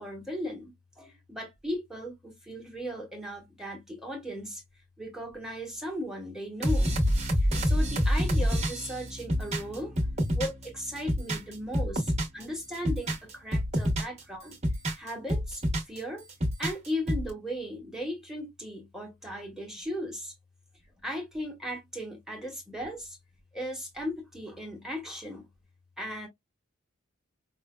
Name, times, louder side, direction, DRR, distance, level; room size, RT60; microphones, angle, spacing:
voice 1, 0.0-4.6 5.0-7.0 7.4-10.0 10.3-14.6 15.0-16.2 16.6-20.3 21.0-23.2 23.5-25.5 26.0-26.3, equal, ahead, 1.2 m, -37 dB
sound 1, 6.6-10.7 11.0-12.4 12.7-14.2 14.5-16.0 16.3-17.3, equal, 30° right, 1.1 m, -27 dB
5.4 x 2.2 x 2.2 m
head